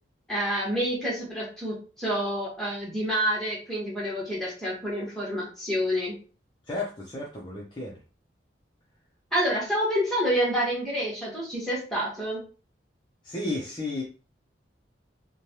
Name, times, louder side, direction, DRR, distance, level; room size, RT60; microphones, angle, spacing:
voice 1, 0.3-6.1 9.3-12.4, equal, ahead, -5 dB, 1.1 m, -28 dB
voice 2, 6.7-8.0 13.2-14.0, left 2 dB, 25° left, -3 dB, 0.5 m, -33 dB
3.1 x 2.2 x 2.7 m, 0.36 s
head